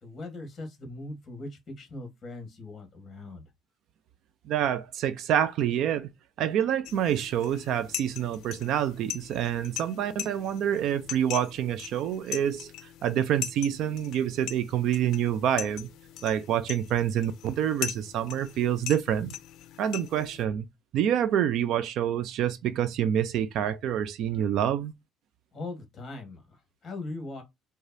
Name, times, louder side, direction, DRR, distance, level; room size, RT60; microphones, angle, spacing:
voice 1, 0.0-3.4 25.5-27.4, left 2 dB, 30° left, 1.5 m, -40 dB
voice 2, 4.5-6.1 6.4-12.7 13.0-15.9 16.2-19.3 19.8-20.7 20.9-24.9, right 10 dB, 60° right, 0.4 m, -27 dB
sound 1, 6.8-20.4, left 11 dB, 65° left, 0.5 m, -41 dB
4.8 x 2.2 x 2.6 m
cardioid pair, 145°, 0 cm